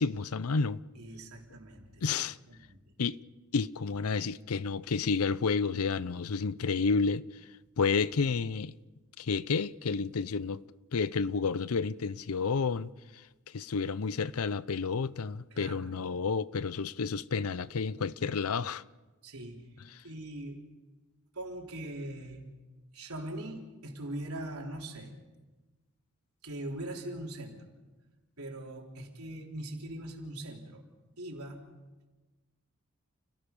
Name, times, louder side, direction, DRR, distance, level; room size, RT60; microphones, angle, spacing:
voice 1, 0.0-0.8 2.0-2.4 3.0-3.2 3.5-7.2 7.8-8.8 9.2-10.6 10.9-12.9 13.5-18.8, left 5 dB, 80° left, 0.6 m, -30 dB
voice 2, 1.0-2.2 2.5-2.8 15.5-15.8 19.2-19.7 20.0-20.6 21.3-22.4 22.9-25.1 26.4-27.6 28.4-30.8 31.2-31.6, right 1 dB, 90° right, 3.8 m, -41 dB
29.5 x 18.0 x 5.4 m
head